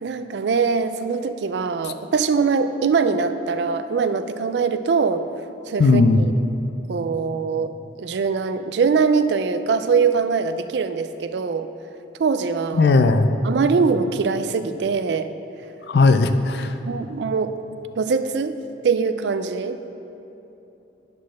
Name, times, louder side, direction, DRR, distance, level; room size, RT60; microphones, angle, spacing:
voice 1, 0.0-5.2 5.7-6.3 6.9-7.7 8.0-11.7 12.2-12.9 13.4-15.3 16.8-17.5 18.0-18.6 18.8-19.8, right 5 dB, 70° right, 10 dB, 0.4 m, -22 dB
voice 2, 5.8-6.2 12.8-13.3 15.9-16.7, left 3 dB, 60° left, 9 dB, 0.4 m, -16 dB
10.0 x 4.1 x 6.3 m, 2.9 s
head